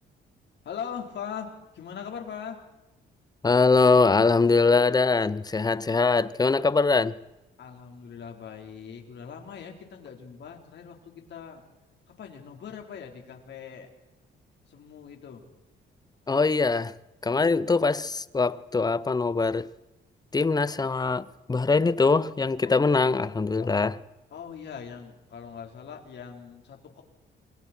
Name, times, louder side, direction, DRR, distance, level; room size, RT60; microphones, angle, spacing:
voice 1, 0.6-2.6 7.6-11.6 12.2-13.9 14.7-15.4 22.6-22.7 23.6-23.7 24.3-27.0, left 7 dB, 60° left, 4.1 m, -41 dB
voice 2, 3.4-7.2 16.3-16.9 17.2-19.7 20.3-24.0, left 4 dB, 20° left, 0.8 m, -22 dB
28.0 x 22.0 x 4.5 m
cardioid pair, 90°, 20 cm